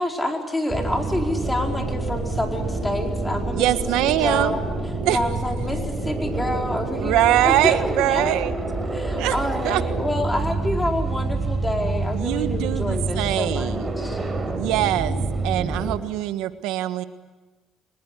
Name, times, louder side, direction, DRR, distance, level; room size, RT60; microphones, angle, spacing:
voice 1, 0.0-3.7 4.1-4.6 5.1-8.4 8.9-14.2, left 1 dB, 10° left, 2 dB, 4.7 m, -28 dB
sound 1, 0.7-16.0, right 3 dB, 25° right, 4.6 m, -27 dB
sound 2, 1.5-15.6, left 1 dB, 75° left, 3.9 m, -41 dB
voice 2, 3.5-4.6 5.0-5.2 7.0-8.5 9.2-9.4 9.6-9.8 12.1-13.9 14.5-17.0, right 14 dB, 85° right, 11 dB, 1.5 m, -23 dB
24.5 x 20.5 x 9.9 m, 1.2 s
cardioid pair, 95°, 0 cm